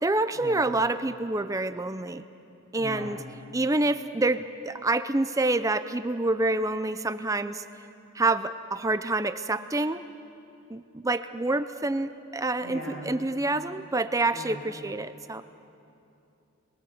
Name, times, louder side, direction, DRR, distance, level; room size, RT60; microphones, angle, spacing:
voice 1, 0.0-2.2 2.7-3.2 3.5-7.6 8.1-10.0 10.7-15.4, right 2 dB, 15° right, 11 dB, 0.5 m, -27 dB
voice 2, 2.8-3.1 12.6-13.2 14.3-14.6, equal, 85° left, -1 dB, 7.1 m, -39 dB
27.5 x 21.5 x 7.9 m, 2.7 s
head